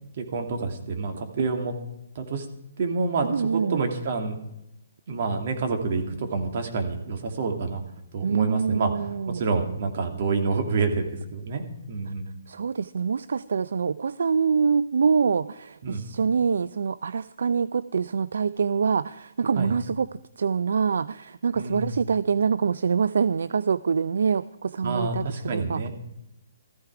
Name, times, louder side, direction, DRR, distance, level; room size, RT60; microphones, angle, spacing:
voice 1, 0.2-1.7 2.1-2.5 2.8-4.4 5.1-7.8 8.1-12.4 15.8-16.1 19.6-19.7 21.5-22.0 24.8-25.9, right 4 dB, 50° right, 5 dB, 2.5 m, -28 dB
voice 2, 3.3-3.9 8.2-9.4 12.5-20.1 20.4-25.9, right 6 dB, 75° right, 16 dB, 0.4 m, -25 dB
15.0 x 14.5 x 4.8 m, 0.87 s
hypercardioid pair, 150°, 0 cm